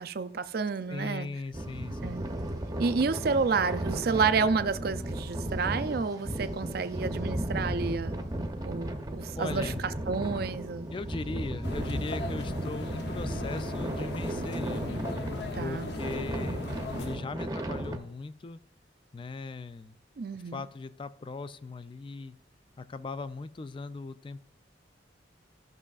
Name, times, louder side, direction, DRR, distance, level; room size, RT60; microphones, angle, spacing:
voice 1, 0.0-1.3 2.0-2.3 2.8-8.2 8.6-9.7 10.1-10.9 15.5-15.9 20.2-20.6, right 5 dB, 55° right, 0.4 m, -30 dB
voice 2, 0.9-2.3 9.4-9.9 10.9-15.0 15.6-16.6 17.0-18.6 19.1-20.0 20.3-22.4 22.8-24.4, left 3 dB, 25° left, 0.3 m, -39 dB
sound 1, 1.5-18.0, right 1 dB, 20° right, 0.7 m, -35 dB
sound 2, 11.6-17.2, left 2 dB, 60° left, 0.8 m, -38 dB
13.5 x 6.2 x 2.4 m
head